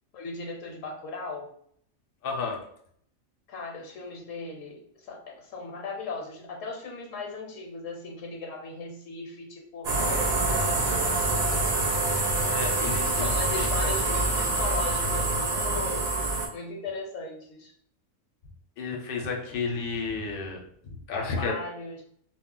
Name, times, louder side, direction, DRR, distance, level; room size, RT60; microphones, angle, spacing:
voice 1, 0.1-1.5 3.5-12.0 13.1-16.1 16.5-17.7 21.2-22.0, left 3 dB, 75° left, 1 dB, 1.0 m, -38 dB
voice 2, 2.2-2.6 12.4-14.6 18.8-21.6, left 4 dB, 55° left, 1 dB, 0.7 m, -33 dB
sound 1, 9.8-16.5, right 2 dB, 80° right, 0.3 m, -26 dB
2.3 x 2.0 x 3.7 m, 0.66 s
omnidirectional pair, 1.4 m